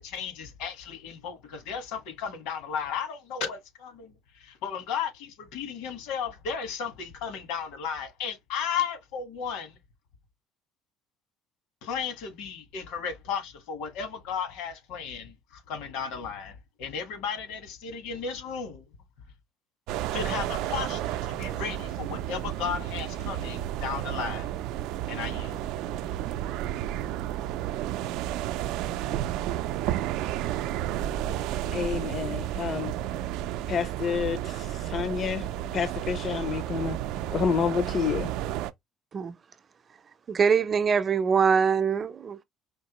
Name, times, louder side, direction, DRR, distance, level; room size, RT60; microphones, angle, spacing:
voice 1, 0.0-9.8 11.8-18.9 20.1-24.5 25.1-25.6, left 7 dB, 85° left, 1.5 m, -34 dB
sound 1, 19.9-38.7, right 12 dB, 80° right, 0.4 m, -32 dB
voice 2, 31.7-32.9 33.7-35.5 35.7-37.0 37.3-38.3, left 7 dB, 45° left, 0.4 m, -29 dB
voice 3, 40.3-42.4, right 6 dB, 35° right, 0.6 m, -23 dB
4.6 x 2.8 x 3.0 m
cardioid pair, 115°, 0 cm